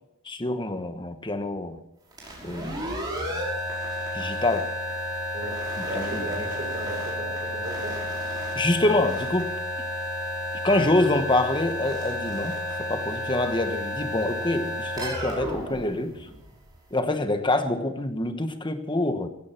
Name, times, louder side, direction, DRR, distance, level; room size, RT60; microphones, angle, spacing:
voice 1, 0.2-1.8 2.4-2.8 4.1-4.7 5.8-6.3 8.5-9.5 10.6-16.2 16.9-19.3, left 2 dB, 20° left, 8 dB, 1.2 m, -26 dB
sound 1, 2.1-16.7, equal, 20° right, 5.5 m, -31 dB
voice 2, 5.8-8.0, right 1 dB, 40° right, 1 dB, 5.8 m, -36 dB
17.0 x 16.0 x 4.5 m, 0.90 s
head